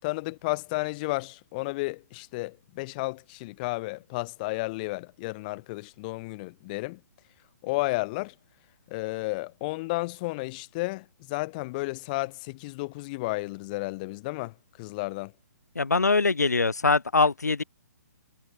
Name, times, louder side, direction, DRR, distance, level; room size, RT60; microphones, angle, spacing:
voice 1, 0.0-7.0 7.6-8.3 8.9-15.3, left 24 dB, 30° left, 5.3 m, -32 dB
voice 2, 15.8-17.6, left 4 dB, 70° left, 2.5 m, -23 dB
figure-of-eight pair, 130°, 9 cm